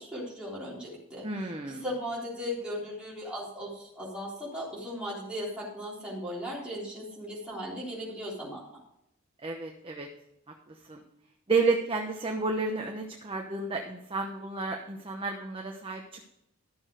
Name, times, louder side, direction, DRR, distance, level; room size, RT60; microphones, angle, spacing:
voice 1, 0.0-8.8, equal, 5° right, -7 dB, 3.6 m, -37 dB
voice 2, 1.2-1.8 9.4-10.1 10.7-11.0 11.5-16.2, right 3 dB, 25° right, 2 dB, 1.0 m, -31 dB
12.0 x 7.1 x 5.0 m, 0.80 s
head